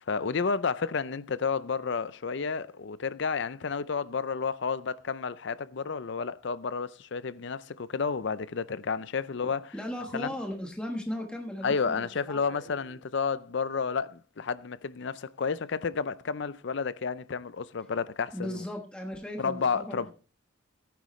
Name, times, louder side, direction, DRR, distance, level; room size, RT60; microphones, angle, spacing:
voice 1, 0.1-9.7 10.1-10.3 11.6-18.6 19.4-20.1, left 5 dB, 55° left, 0.5 m, -31 dB
voice 2, 9.4-12.6 18.3-20.1, left 1 dB, 5° left, 1.2 m, -37 dB
15.0 x 9.3 x 3.1 m
head